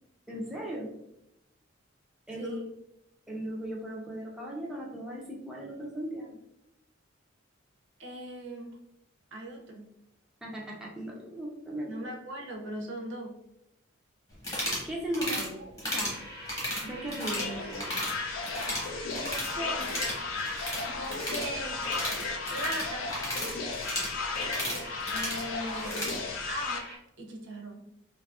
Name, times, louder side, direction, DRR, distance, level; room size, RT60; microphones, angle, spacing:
voice 1, 0.3-0.9 2.3-2.5 3.3-6.4 10.4-12.1 14.8-15.6 15.9-16.1 16.8-18.0, right 1 dB, 5° right, -3 dB, 0.4 m, -37 dB
voice 2, 8.0-8.8 9.3-9.9 11.9-13.4 15.3-15.4 19.1-20.0 20.8-21.8 22.5-23.3 25.1-26.9 27.2-27.8, right 1 dB, 65° right, 2 dB, 0.5 m, -39 dB
sound 1, 14.4-14.9 15.1-15.5 15.8-16.2 16.5-17.5 17.7-18.1 18.4-19.5 19.8-26.2, left 1 dB, 20° left, 1.0 m, -34 dB
sound 2, 16.0-27.0, equal, 55° left, 0.8 m, -44 dB
sound 3, 17.2-26.8, left 4 dB, 75° left, 0.4 m, -35 dB
2.6 x 2.4 x 2.3 m, 0.82 s
head